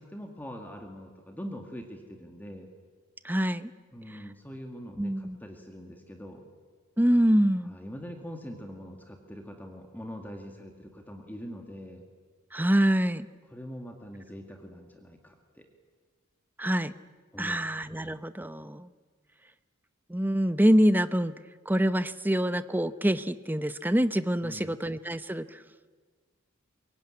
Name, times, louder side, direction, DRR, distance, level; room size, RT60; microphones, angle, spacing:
voice 1, 0.0-2.7 3.9-6.5 7.7-12.0 13.5-15.7 17.3-17.7 24.4-24.8, equal, 10° left, 3 dB, 2.0 m, -43 dB
voice 2, 3.2-3.7 4.1-4.2 5.0-5.4 7.0-7.7 12.5-13.3 16.6-16.9 17.4-18.9 20.1-21.3 21.7-25.6, equal, 10° right, 13 dB, 0.7 m, -25 dB
24.0 x 22.5 x 9.8 m, 1.5 s
head